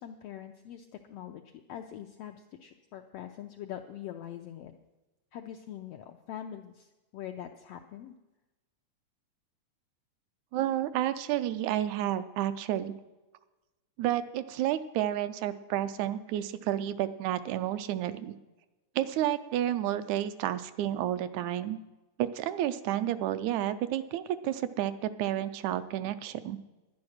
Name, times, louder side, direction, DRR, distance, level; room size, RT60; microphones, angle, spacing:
voice 1, 0.0-4.7 5.3-8.1, left 10 dB, 85° left, 4 dB, 1.4 m, -43 dB
voice 2, 10.5-13.0 14.0-18.4 19.0-21.8 22.2-26.6, right 12 dB, 80° right, 12 dB, 1.8 m, -31 dB
10.5 x 10.5 x 6.4 m, 1.1 s
omnidirectional pair, 3.4 m